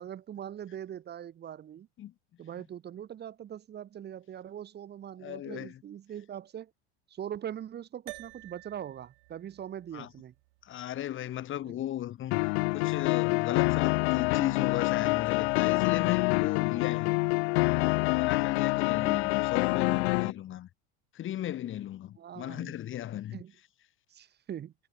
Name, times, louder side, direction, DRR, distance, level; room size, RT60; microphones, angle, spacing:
voice 1, 0.0-1.9 2.4-6.7 7.1-10.3 11.6-11.8 19.1-19.2 22.2-22.7 23.3-23.5 24.1-24.7, right 10 dB, 30° right, 4.0 m, -42 dB
voice 2, 5.2-5.8 9.9-10.1 10.6-12.4 12.7-17.2 18.0-20.7 21.1-23.4, left 12 dB, 35° left, 6.2 m, -36 dB
sound 1, 8.1-12.6, right 26 dB, 70° right, 7.0 m, -52 dB
sound 2, 12.3-20.3, left 28 dB, 70° left, 1.2 m, -26 dB
supercardioid pair, 140°, 34 cm